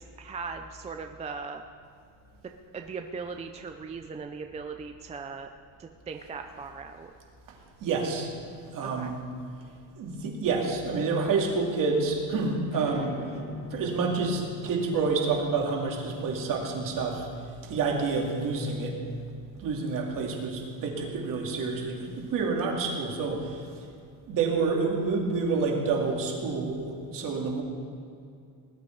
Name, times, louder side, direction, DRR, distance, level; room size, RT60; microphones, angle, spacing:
voice 1, 0.0-1.6 2.7-5.5 5.8-7.1 8.8-9.1, right 4 dB, 15° right, 5 dB, 0.4 m, -39 dB
voice 2, 7.8-8.3 8.7-9.2 10.0-13.1 13.7-17.3 17.6-19.0 19.6-23.9 24.3-27.6, right 4 dB, 50° right, 0 dB, 2.5 m, -28 dB
sound 1, 12.7-17.9, left 1 dB, 20° left, 2.4 m, -44 dB
19.5 x 11.5 x 4.6 m, 2.4 s
cardioid pair, 175°, 42 cm